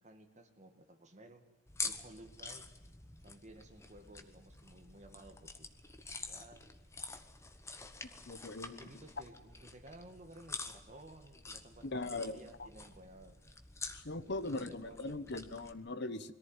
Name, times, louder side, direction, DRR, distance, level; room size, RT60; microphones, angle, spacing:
voice 1, 0.0-1.5 1.8-2.6 3.2-5.7 6.3-6.7 8.6-13.4 14.2-15.2, right 1 dB, 35° right, 5 dB, 2.0 m, -56 dB
sound 1, 1.7-15.7, left 3 dB, 15° left, 1.1 m, -47 dB
voice 2, 8.3-8.9 11.8-12.7 13.9-16.3, left 2 dB, 50° left, 11 dB, 1.0 m, -40 dB
22.0 x 14.5 x 9.1 m, 1.2 s
head